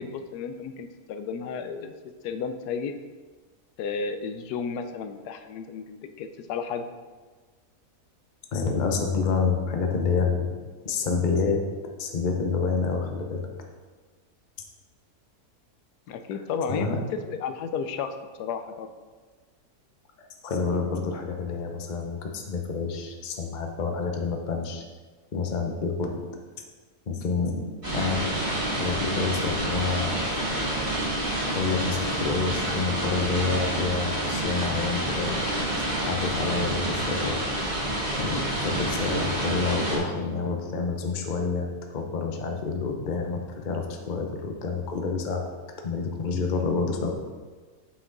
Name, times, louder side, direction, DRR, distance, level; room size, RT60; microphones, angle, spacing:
voice 1, 0.0-2.9 3.8-6.8 16.1-18.9, left 6 dB, 85° left, 8 dB, 1.2 m, -33 dB
voice 2, 8.5-10.5 10.8-11.6 12.0-13.5 16.7-17.0 20.2-24.8 25.3-26.2 27.1-27.6 27.9-28.3 28.8-30.2 31.5-35.5 36.0-37.4 38.2-41.7 41.9-45.4 45.8-47.1, left 4 dB, 40° left, 3 dB, 0.8 m, -28 dB
sound 1, 27.8-40.0, right 1 dB, 30° right, 2.3 m, -28 dB
7.9 x 6.0 x 3.9 m, 1.4 s
omnidirectional pair, 1.7 m